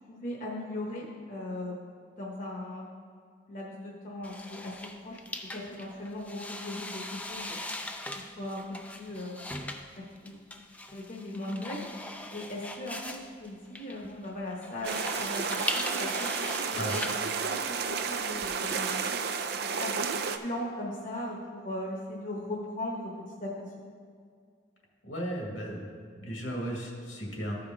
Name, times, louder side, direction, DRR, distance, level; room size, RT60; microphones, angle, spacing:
voice 1, 0.1-1.8 2.1-2.9 3.5-4.8 5.0-5.2 5.5-7.6 8.1-9.4 10.0-10.6 10.9-11.9 12.3-19.1 19.6-20.0 20.4-23.8, left 1 dB, 40° left, -2 dB, 1.0 m, -38 dB
sound 1, 4.2-18.8, left 1 dB, 5° left, 0.4 m, -40 dB
sound 2, 14.8-20.4, right 5 dB, 55° right, 0.4 m, -32 dB
voice 2, 25.0-25.9 26.2-27.5, equal, 85° left, -2 dB, 2.0 m, -35 dB
14.0 x 5.1 x 3.6 m, 2.1 s
head